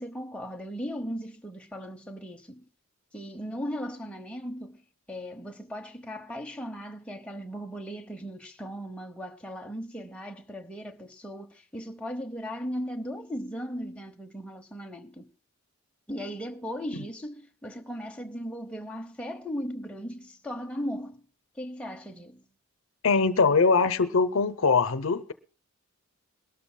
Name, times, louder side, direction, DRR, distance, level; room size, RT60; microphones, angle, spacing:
voice 1, 0.0-2.6 3.1-4.8 5.1-15.3 16.1-21.2 21.6-22.4, equal, 5° left, 0.8 m, -37 dB
voice 2, 23.0-25.3, left 4 dB, 65° left, 0.7 m, -22 dB
22.5 x 13.0 x 2.2 m
head